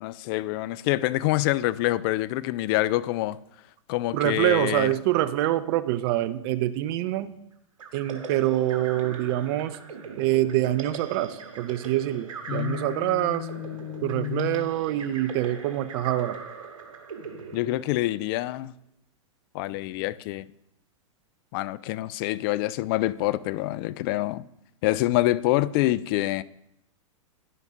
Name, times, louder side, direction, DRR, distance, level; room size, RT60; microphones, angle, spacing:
voice 1, 0.0-3.4 3.9-4.9 12.5-14.7 17.5-18.7 19.5-20.4 21.5-24.4 24.8-26.4, left 17 dB, 45° left, 0.4 m, -26 dB
voice 2, 4.1-7.3 7.9-9.8 10.2-13.5 14.0-16.4, right 14 dB, 45° right, 0.6 m, -25 dB
sound 1, 7.8-18.4, right 5 dB, 80° right, 1.4 m, -41 dB
10.5 x 5.5 x 3.6 m
hypercardioid pair, 120°, 17 cm